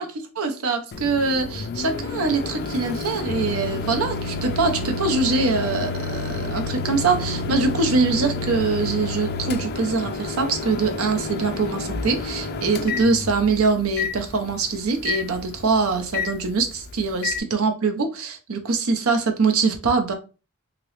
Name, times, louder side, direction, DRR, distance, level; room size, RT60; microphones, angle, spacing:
voice 1, 0.4-20.1, right 4 dB, 90° right, 5 dB, 0.6 m, -23 dB
Microwave oven, 0.9-17.4, left 3 dB, 50° left, 0.3 m, -30 dB
2.9 x 2.9 x 3.1 m, 0.32 s
head